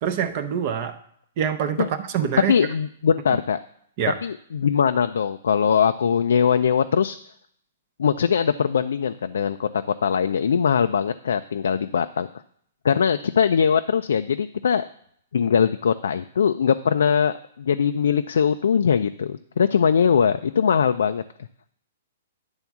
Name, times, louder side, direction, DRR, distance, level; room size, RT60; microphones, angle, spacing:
voice 1, 0.0-1.0 1.4-2.5 4.0-4.2, right 8 dB, 35° right, 8 dB, 0.6 m, -25 dB
voice 2, 2.5-3.6 4.2-7.2 8.0-9.7 10.0-12.3 12.8-14.9 15.3-21.2, left 7 dB, 85° left, 9 dB, 0.4 m, -21 dB
10.5 x 3.5 x 7.1 m, 0.66 s
hypercardioid pair, 165°, 0 cm